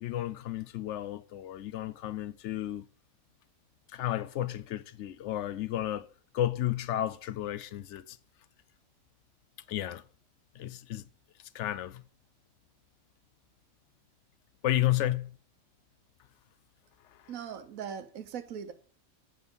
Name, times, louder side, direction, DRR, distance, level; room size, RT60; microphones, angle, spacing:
voice 1, 0.0-2.8 3.9-6.1 6.3-8.2 9.7-10.0 10.6-11.0 11.5-12.0 14.6-15.3, left 13 dB, 65° left, 0.8 m, -32 dB
voice 2, 17.3-18.7, right 8 dB, 85° right, 1.2 m, -40 dB
8.0 x 6.1 x 5.2 m
omnidirectional pair, 1.4 m